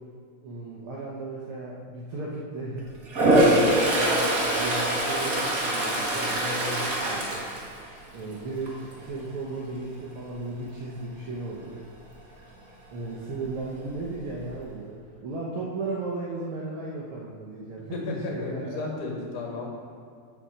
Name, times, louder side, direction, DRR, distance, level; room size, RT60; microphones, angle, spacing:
voice 1, 0.4-2.9 3.5-7.5 8.1-11.8 12.9-18.9, right 2 dB, 70° right, -4 dB, 1.3 m, -35 dB
Toilet flush, 3.1-8.3 8.7-9.0 13.5-13.6 13.9-14.6, right 1 dB, 45° right, 1.2 m, -24 dB
voice 2, 18.2-19.6, left 3 dB, 80° left, -1 dB, 3.0 m, -33 dB
8.0 x 5.7 x 6.2 m, 2.2 s
omnidirectional pair, 3.6 m